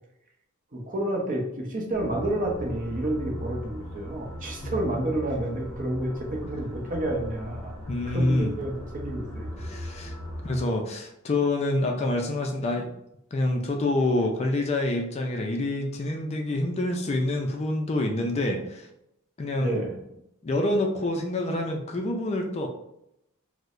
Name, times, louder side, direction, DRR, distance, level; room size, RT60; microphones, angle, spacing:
voice 1, 0.7-7.7 8.1-9.7 19.6-19.9, right 1 dB, 35° right, 0 dB, 0.7 m, -30 dB
sound 1, 1.9-10.6, equal, 10° left, 1.4 m, -38 dB
voice 2, 7.9-8.5 9.6-10.1 10.4-12.9 13.3-18.9 19.4-19.8 20.4-22.7, left 2 dB, 30° left, 2 dB, 0.3 m, -27 dB
4.5 x 2.1 x 2.5 m, 0.81 s
head